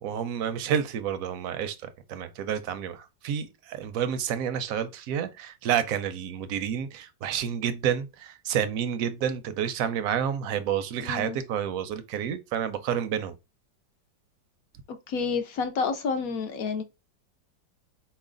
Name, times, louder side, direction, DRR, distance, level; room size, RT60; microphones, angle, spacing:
voice 1, 0.0-13.3, right 8 dB, 70° right, 0.8 m, -29 dB
voice 2, 11.0-11.4 14.9-16.8, left 5 dB, 65° left, 0.9 m, -29 dB
4.3 x 3.1 x 3.7 m
omnidirectional pair, 2.0 m